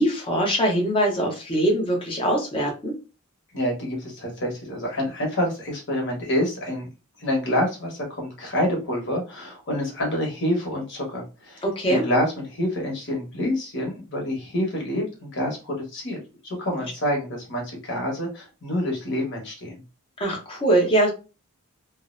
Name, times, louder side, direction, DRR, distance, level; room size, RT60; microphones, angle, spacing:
voice 1, 0.0-2.9 11.6-12.0 20.2-21.1, right 1 dB, 25° left, 0 dB, 0.8 m, -22 dB
voice 2, 3.5-6.9 7.2-16.2 16.4-19.7, left 1 dB, 55° left, 0 dB, 1.1 m, -27 dB
2.5 x 2.1 x 2.5 m, 0.31 s
head